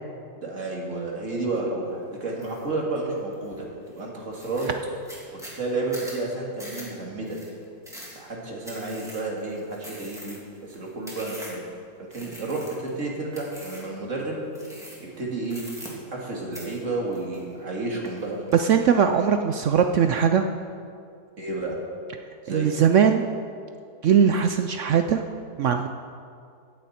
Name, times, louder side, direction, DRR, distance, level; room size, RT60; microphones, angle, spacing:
voice 1, 0.4-3.6 3.9-4.7 5.3-7.4 8.1-11.6 12.0-14.4 15.0-15.6 16.1-18.5 21.4-21.8 22.4-22.7, right 2 dB, 50° right, -2 dB, 2.5 m, -31 dB
sound 1, 2.4-2.7 3.1-3.6 4.0-4.1 4.3-11.7 12.1-13.0 13.3-13.9 14.5-15.2 15.5-16.3 16.5-17.7 18.0-18.6, equal, ahead, 2.5 m, -43 dB
voice 2, 18.5-20.4 22.5-23.3 24.0-25.2 25.6-25.9, right 7 dB, 70° right, 7 dB, 0.7 m, -20 dB
16.5 x 10.0 x 4.3 m, 2.4 s
omnidirectional pair, 1.8 m